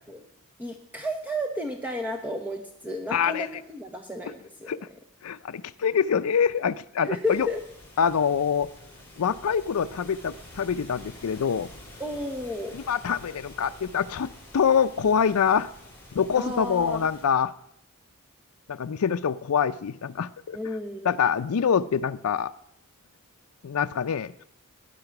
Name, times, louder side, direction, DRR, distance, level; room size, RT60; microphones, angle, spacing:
voice 1, 0.6-4.7 7.0-7.6 12.0-12.8 16.3-17.1 20.5-21.1, left 1 dB, 10° right, 1.0 m, -32 dB
voice 2, 3.1-3.5 4.7-4.8 5.2-7.5 8.0-8.7 9.2-11.7 12.7-15.7 16.1-17.5 18.7-20.6 21.0-22.5 23.6-24.3, left 7 dB, 80° left, 0.4 m, -25 dB
sound 1, 7.2-17.2, left 1 dB, 10° left, 5.6 m, -48 dB
18.5 x 10.0 x 5.9 m
head